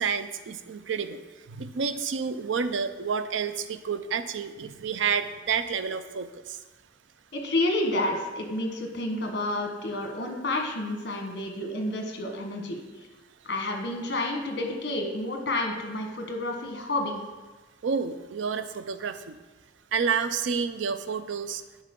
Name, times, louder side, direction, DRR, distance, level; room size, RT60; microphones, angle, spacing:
voice 1, 0.0-6.6 17.8-19.4 19.9-21.6, right 6 dB, 80° right, 11 dB, 0.4 m, -29 dB
voice 2, 7.3-12.8 13.4-17.2, left 1 dB, 60° left, 3 dB, 1.2 m, -30 dB
10.0 x 4.4 x 3.7 m, 1.2 s
head